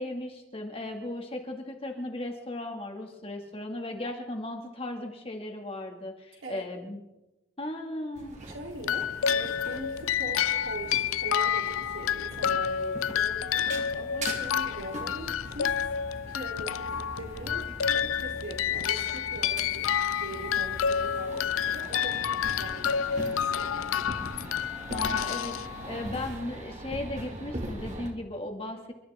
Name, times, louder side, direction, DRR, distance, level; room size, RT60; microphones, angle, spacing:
voice 1, 0.0-7.0 7.6-8.4 24.9-28.9, left 1 dB, 30° left, 2 dB, 2.1 m, -36 dB
sound 1, 8.1-28.1, right 1 dB, 35° right, 2.3 m, -42 dB
voice 2, 8.5-15.9 16.3-17.7 17.9-19.9 20.2-22.2 22.5-23.7, right 1 dB, 75° right, 0 dB, 3.4 m, -42 dB
sound 2, 8.8-26.2, left 8 dB, 90° left, 0.5 m, -29 dB
29.0 x 13.0 x 3.6 m, 1.0 s
head